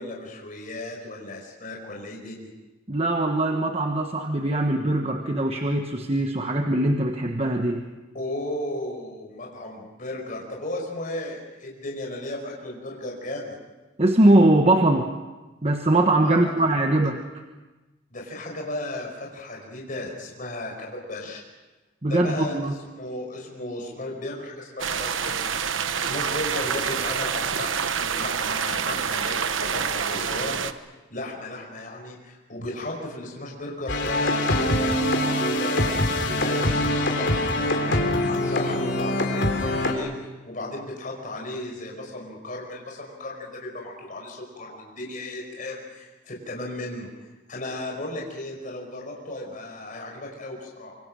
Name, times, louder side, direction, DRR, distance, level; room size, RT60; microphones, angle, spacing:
voice 1, 0.0-2.5 8.1-13.5 16.2-16.4 18.1-21.4 22.0-25.4 25.7-29.4 29.7-34.9 35.3-40.1 40.4-47.1 47.5-50.9, left 1 dB, 40° left, 0 dB, 5.1 m, -35 dB
voice 2, 2.9-7.9 14.0-15.1 15.6-17.2 22.0-22.7, right 1 dB, 30° right, 4 dB, 1.3 m, -21 dB
sound 1, 24.8-30.7, right 7 dB, 75° right, 1.0 m, -27 dB
sound 2, 33.9-39.9, left 1 dB, 60° left, 3.6 m, -24 dB
26.0 x 25.0 x 6.4 m, 1.2 s
head